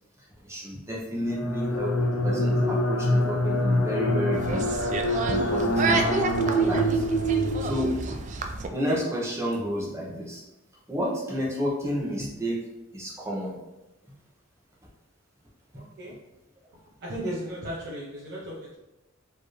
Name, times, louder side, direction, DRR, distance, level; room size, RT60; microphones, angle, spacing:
voice 1, 0.4-1.9 2.2-4.6 5.2-6.0 6.3-7.0 7.6-8.2 8.7-10.4 10.9-12.6 12.9-13.6, equal, 15° right, -5 dB, 1.0 m, -31 dB
sound 1, 1.3-8.2, equal, 70° left, 0.7 m, -25 dB
sound 2, 4.3-8.7, right 3 dB, 35° right, 0.3 m, -30 dB
voice 2, 17.0-18.5, right 1 dB, 55° right, -7 dB, 0.8 m, -34 dB
4.7 x 2.9 x 3.2 m, 0.99 s
head